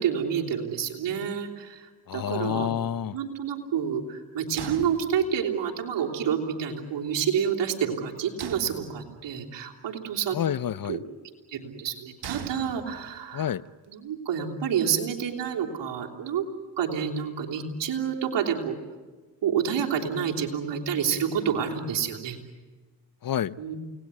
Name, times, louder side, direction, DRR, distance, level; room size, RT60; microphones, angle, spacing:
voice 1, 0.0-1.9 2.1-2.7 3.1-10.4 10.9-11.0 11.5-13.5 13.9-16.4 16.8-18.8 19.4-22.4 23.6-23.8, right 8 dB, 80° right, 0 dB, 3.4 m, -28 dB
voice 2, 2.1-3.2 10.3-11.0 13.3-13.6 23.2-23.5, left 9 dB, 55° left, 19 dB, 0.7 m, -28 dB
sound 1, 4.6-5.7 8.4-9.4 12.2-13.3, right 8 dB, 65° right, 1.4 m, -40 dB
29.0 x 19.0 x 9.8 m, 1.3 s
supercardioid pair, 45°, 42 cm